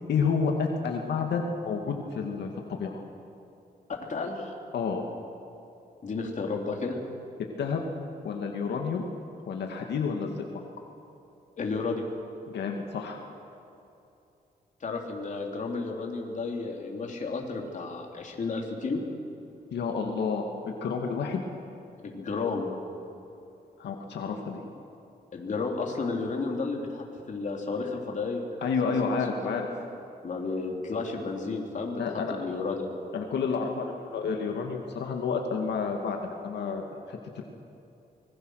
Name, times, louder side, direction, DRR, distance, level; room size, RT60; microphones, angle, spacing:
voice 1, 0.1-3.0 4.7-5.0 7.6-7.8 8.2-9.0 9.5-10.5 12.5-13.2 19.7-21.4 23.8-24.6 28.6-29.7 32.0-32.4 33.1-37.4, left 5 dB, 90° left, 2 dB, 2.1 m, -30 dB
voice 2, 4.1-4.5 6.0-7.0 11.6-12.0 14.8-19.0 22.0-22.7 25.3-28.5 29.4-29.6 30.2-32.9, left 4 dB, 45° left, 0 dB, 3.5 m, -32 dB
24.5 x 21.5 x 6.5 m, 2.8 s
cardioid pair, 115°, 17 cm